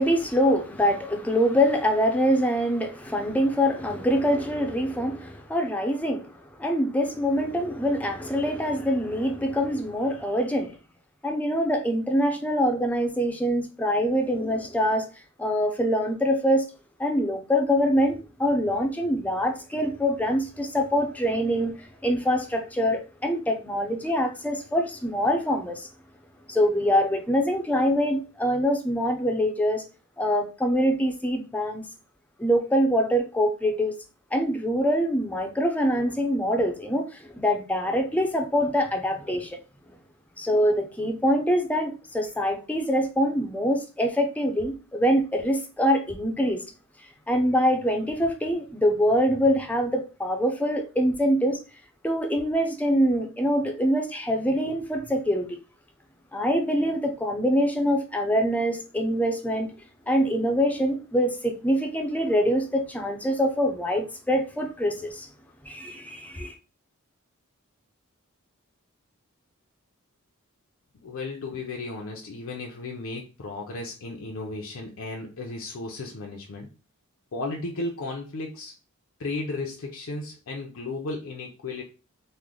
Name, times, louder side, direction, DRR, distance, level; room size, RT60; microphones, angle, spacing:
voice 1, 0.0-6.3 6.6-10.7 11.2-15.1 15.4-16.7 17.0-25.9 26.5-29.8 30.2-31.8 32.4-34.0 34.3-39.6 40.4-46.6 47.3-51.6 52.0-55.5 56.3-59.7 60.1-65.3 65.7-66.5, equal, 5° left, 0.5 m, -24 dB
voice 2, 71.0-76.7 77.3-78.7 79.2-81.8, left 3 dB, 70° left, 0.5 m, -34 dB
3.1 x 2.1 x 3.7 m
head